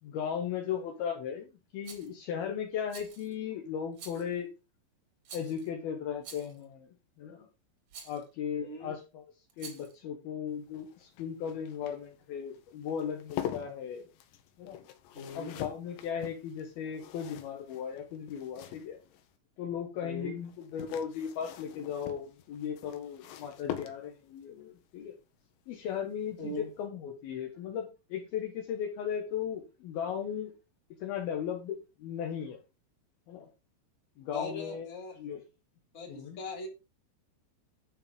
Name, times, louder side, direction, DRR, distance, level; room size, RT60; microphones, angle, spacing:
voice 1, 0.0-4.5 5.3-7.5 8.0-9.2 9.6-14.1 14.6-14.8 15.3-19.0 19.6-25.1 25.7-30.5 31.0-32.6 33.3-33.5 34.2-34.9 35.2-35.4 36.1-36.4, left 8 dB, 70° left, 3 dB, 2.8 m, -37 dB
Rattle, 1.8-2.1 2.9-3.3 4.0-4.3 5.3-5.7 6.2-6.6 7.9-8.2 9.5-10.0, right 6 dB, 45° right, 2.7 m, -48 dB
voice 2, 8.5-8.9 15.1-15.5 20.0-20.3 26.4-26.7 34.3-35.2 35.9-36.7, left 2 dB, 20° left, 1 dB, 2.8 m, -40 dB
sound 1, 10.5-19.3 20.5-24.4 26.0-26.3 26.6-26.7, left 11 dB, 85° left, 3.4 m, -44 dB
11.0 x 5.7 x 5.1 m, 0.29 s
omnidirectional pair, 5.1 m